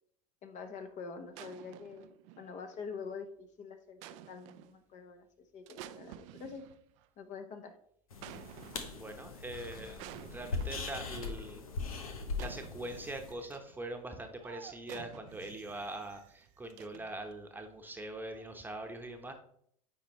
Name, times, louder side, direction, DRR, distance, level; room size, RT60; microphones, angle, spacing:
voice 1, 0.4-4.0 4.3-5.3 5.5-6.6 7.2-7.8, left 5 dB, 45° left, 7 dB, 1.1 m, -45 dB
sound 1, 1.3-2.8 4.0-4.8 5.7-7.1 8.2-9.2 10.0-11.0 12.3-13.8 14.4-17.3 18.2-18.6, right 13 dB, 65° right, 0.5 m, -51 dB
sound 2, 8.1-13.3, left 4 dB, 90° left, 1.0 m, -40 dB
voice 2, 8.9-10.0 10.3-11.6 12.4-19.3, right 1 dB, 10° right, 5 dB, 1.0 m, -42 dB
9.5 x 4.0 x 3.1 m, 0.66 s
hypercardioid pair, 90°, 18 cm